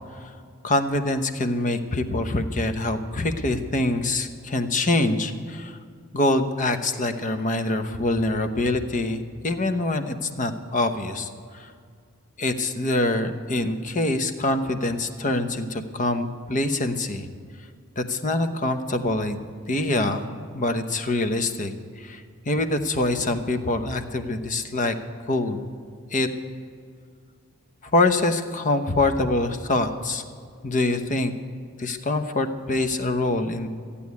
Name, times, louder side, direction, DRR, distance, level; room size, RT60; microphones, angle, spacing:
voice 1, 0.6-5.8 6.1-11.7 12.4-17.3 18.0-19.4 19.7-24.9 25.3-25.6 26.1-26.3 27.9-30.2 30.6-31.3 31.8-33.7, left 2 dB, 35° left, 9 dB, 0.9 m, -25 dB
14.5 x 8.5 x 9.4 m, 2.2 s
head